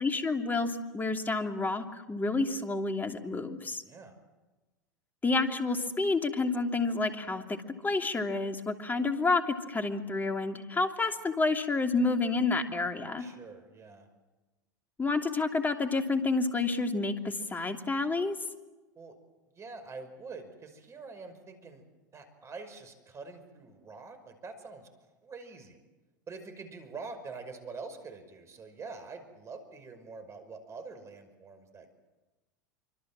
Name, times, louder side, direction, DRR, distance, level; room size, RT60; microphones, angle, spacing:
voice 1, 0.0-3.8 5.2-7.6 7.8-13.2 15.0-18.4, left 3 dB, 15° left, 4 dB, 3.0 m, -29 dB
voice 2, 3.9-4.2 13.2-14.1 19.0-19.2 19.5-21.8 22.1-24.9 25.2-25.8 26.3-31.9, right 4 dB, 30° right, 8 dB, 5.6 m, -45 dB
26.5 x 25.5 x 7.6 m, 1.2 s
hypercardioid pair, 85°, 10 cm